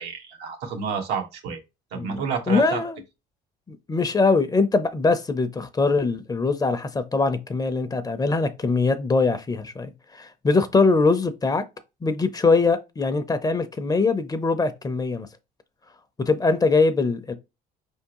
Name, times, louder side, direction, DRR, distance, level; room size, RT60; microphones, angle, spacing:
voice 1, 0.0-1.6 1.9-2.8, right 6 dB, 90° right, 1.4 m, -29 dB
voice 2, 1.9-3.0 3.7-11.6 12.0-15.3 16.2-17.3, left 3 dB, 20° left, 0.6 m, -22 dB
5.0 x 3.6 x 2.9 m
cardioid pair, 110°, 17 cm